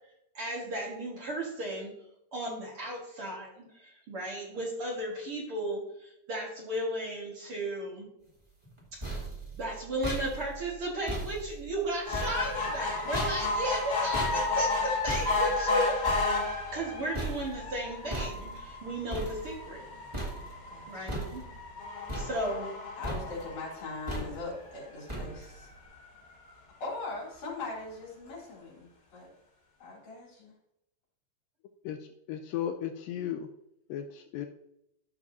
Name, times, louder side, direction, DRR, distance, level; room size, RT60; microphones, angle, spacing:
voice 1, 0.3-1.9 2.3-8.1 9.6-16.0 16.7-19.8 20.9-21.5 22.1-22.7, right 1 dB, 50° right, -3 dB, 2.0 m, -35 dB
sound 1, 8.6-19.9 20.1-20.7 21.1-21.7 22.1-22.8 23.0-23.6 24.1-24.6 25.1-25.6, right 2 dB, 10° right, 1.5 m, -38 dB
sound 2, 12.1-24.7 25.2-25.3 25.6-25.7 26.0-26.1, left 3 dB, 40° left, 3.3 m, -33 dB
voice 2, 20.7-21.2 22.5-22.6 23.0-25.7 26.8-29.3 29.8-30.5, left 3 dB, 55° left, -5 dB, 5.0 m, -40 dB
voice 3, 31.8-33.5 33.9-34.5, left 10 dB, 80° left, 6 dB, 2.1 m, -35 dB
13.5 x 6.0 x 2.7 m, 0.80 s
omnidirectional pair, 4.2 m